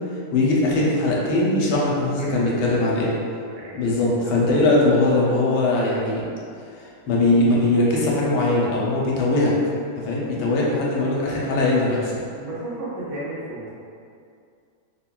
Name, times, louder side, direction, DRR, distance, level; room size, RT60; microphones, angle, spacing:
voice 1, 0.3-3.2 3.7-6.3 6.8-9.5 10.0-12.2, left 2 dB, 80° left, -4 dB, 1.2 m, -20 dB
voice 2, 2.2-2.9 3.6-3.9 4.2-4.5 12.3-13.7, right 1 dB, 80° right, -8 dB, 1.4 m, -34 dB
3.6 x 2.2 x 2.2 m, 2.3 s
omnidirectional pair, 1.8 m